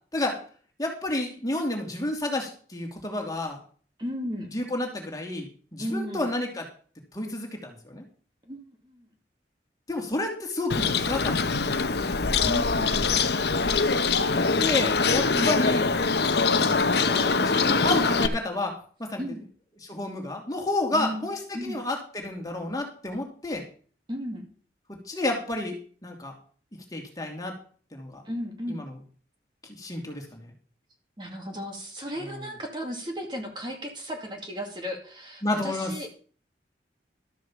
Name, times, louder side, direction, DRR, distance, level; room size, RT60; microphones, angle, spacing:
voice 1, 0.8-3.6 4.4-6.6 7.1-8.0 9.9-12.1 14.3-15.9 16.5-18.7 19.0-19.2 19.8-23.6 25.0-25.8 26.0-26.3 26.9-27.5 27.9-28.2 28.7-29.0 29.6-30.5 32.2-32.4 35.4-35.9, left 2 dB, 20° left, 1 dB, 2.7 m, -31 dB
voice 2, 4.0-4.5 5.8-6.3 8.5-9.1 12.4-13.0 15.3-15.6 19.2-19.4 20.9-21.2 21.5-21.8 24.1-24.5 28.2-28.8 31.2-36.1, equal, 25° right, 2 dB, 2.4 m, -34 dB
Bird, 10.7-18.3, left 4 dB, 65° left, 0.9 m, -23 dB
13.0 x 6.3 x 7.3 m, 0.42 s
head